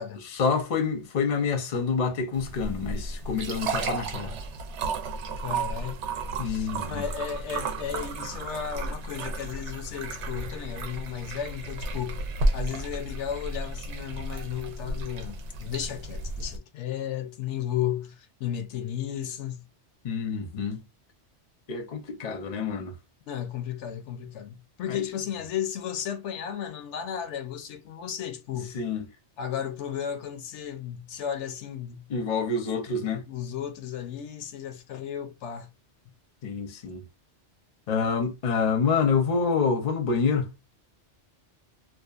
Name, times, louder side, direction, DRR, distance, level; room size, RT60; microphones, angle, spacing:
voice 1, 0.4-4.3 6.4-7.1 20.0-20.8 21.7-22.9 24.9-25.0 28.7-29.1 32.1-33.2 36.4-37.0 37.9-40.5, left 5 dB, 45° left, 0.6 m, -27 dB
sound 1, 2.3-16.6, right 2 dB, 80° right, 0.9 m, -33 dB
voice 2, 5.4-6.0 6.4-12.3 12.5-19.6 23.3-28.8 29.4-32.1 33.1-35.7, left 9 dB, 80° left, 0.9 m, -34 dB
2.7 x 2.3 x 2.3 m
omnidirectional pair, 1.2 m